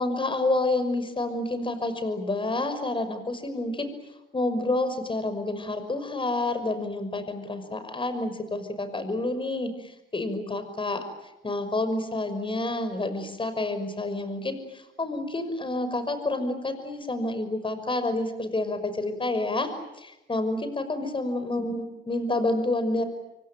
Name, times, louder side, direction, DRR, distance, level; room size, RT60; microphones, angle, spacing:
voice 1, 0.0-3.9 4.3-11.0 11.4-19.7 20.0-23.0, left 2 dB, 25° left, 10 dB, 5.8 m, -29 dB
27.0 x 24.0 x 9.2 m, 0.92 s
cardioid pair, 90°, 20 cm